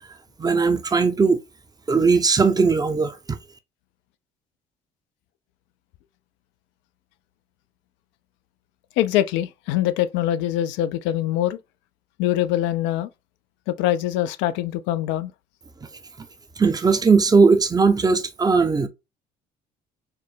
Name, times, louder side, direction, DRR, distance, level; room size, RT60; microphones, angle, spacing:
voice 1, 0.4-1.4 1.9-3.4 16.6-18.9, right 4 dB, 20° right, 0.6 m, -18 dB
voice 2, 9.0-11.6 12.2-13.1 13.7-15.3, left 13 dB, 60° left, 0.4 m, -23 dB
4.4 x 2.0 x 3.2 m
hypercardioid pair, 55°, 21 cm